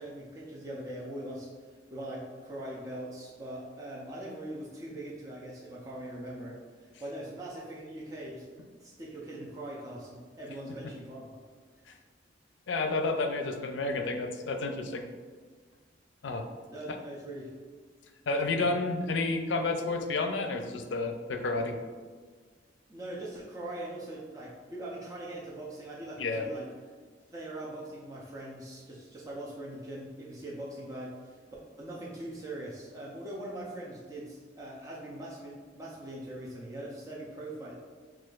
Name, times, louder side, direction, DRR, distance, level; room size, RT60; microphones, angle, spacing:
voice 1, 0.0-1.5 1.9-8.4 8.8-11.4 16.7-17.5 18.3-18.7 22.9-26.6 27.3-31.4 31.8-37.8, right 1 dB, 20° right, -6 dB, 0.6 m, -41 dB
voice 2, 12.7-15.0 16.2-16.4 18.3-21.8 26.2-26.4, left 3 dB, 90° left, 5 dB, 0.4 m, -30 dB
6.2 x 2.4 x 2.4 m, 1.6 s
head